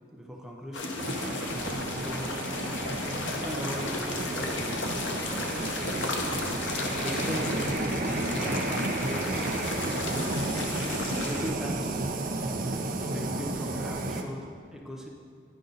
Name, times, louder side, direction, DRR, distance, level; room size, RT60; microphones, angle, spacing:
voice 1, 0.1-1.0 1.9-2.4 3.2-6.2 6.8-9.5 11.1-12.0 13.0-15.1, equal, ahead, -1 dB, 0.6 m, -39 dB
sound 1, 0.7-11.5, left 3 dB, 90° left, 0.8 m, -34 dB
sound 2, 1.0-14.2, right 2 dB, 45° right, 0.5 m, -32 dB
9.7 x 5.2 x 3.9 m, 2.2 s
head